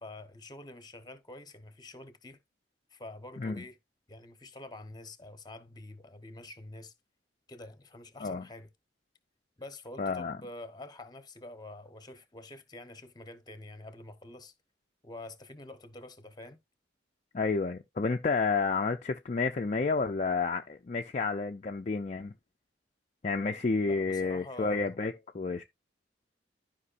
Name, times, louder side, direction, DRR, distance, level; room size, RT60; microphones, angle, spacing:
voice 1, 0.0-2.4 2.9-3.8 4.1-6.9 7.5-8.7 9.6-14.5 15.0-16.6 23.8-25.0, left 2 dB, 25° left, 1.0 m, -47 dB
voice 2, 10.0-10.4 17.3-22.3 23.2-25.6, left 4 dB, 40° left, 0.5 m, -30 dB
13.0 x 5.2 x 2.5 m
head